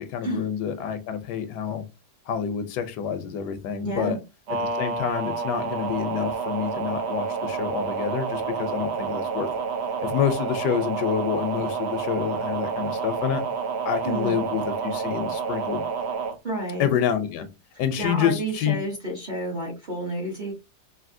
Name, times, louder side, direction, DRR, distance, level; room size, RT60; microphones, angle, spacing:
voice 1, 0.0-1.9 2.3-4.2 4.7-9.5 10.0-13.4 13.8-15.8 16.8-17.5 17.8-18.8, left 8 dB, 80° left, 1.2 m, -27 dB
voice 2, 3.8-4.2 14.0-14.4 16.4-16.9 18.0-20.5, right 1 dB, 35° right, 0.8 m, -30 dB
sound 1, 4.5-16.4, right 5 dB, 65° right, 0.7 m, -29 dB
3.4 x 2.6 x 2.5 m
omnidirectional pair, 1.8 m